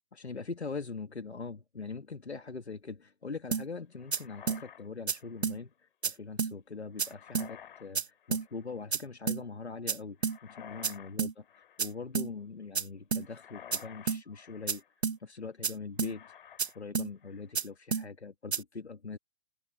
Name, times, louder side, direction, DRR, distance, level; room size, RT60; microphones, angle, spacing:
voice 1, 0.1-5.7 6.0-11.4 11.8-14.8 15.2-19.2, left 4 dB, 85° left, 2.3 m, -42 dB
sound 1, 3.5-3.7 4.1-4.2 4.5-4.6 5.1-5.2 5.4-5.6 6.0-6.1 6.4-6.5 7.0-7.1 7.4-7.5 8.0-8.1 8.3-8.5 8.9-9.0 9.3-9.4 9.9-10.0 10.2-10.4 10.8-10.9 11.2-11.3 11.8-11.9 12.2-12.3 12.8-12.9 13.1-13.3 13.7-13.8 14.1-14.2 14.7-14.8 15.0-15.2 15.6-15.7 16.0-16.1 16.6-16.7 17.0-17.1 17.6-17.7 17.9-18.1 18.5-18.6, right 5 dB, 80° right, 1.4 m, -30 dB
sound 2, 4.0-5.6 6.9-7.9 8.2-8.7 10.2-11.2 11.4-12.0 13.2-14.9 16.0-16.8 17.2-17.6, left 10 dB, 55° left, 7.3 m, -52 dB
figure-of-eight pair, 125°, 32 cm